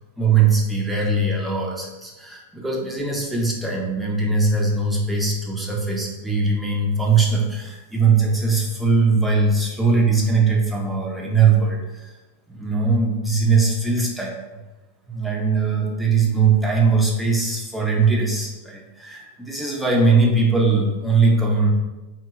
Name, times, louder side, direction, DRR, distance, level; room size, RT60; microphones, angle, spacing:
voice 1, 0.2-12.1 12.5-14.3 15.1-21.7, right 4 dB, 5° right, -3 dB, 0.6 m, -20 dB
2.8 x 2.2 x 2.8 m, 1.2 s
figure-of-eight pair, 90°, 0 cm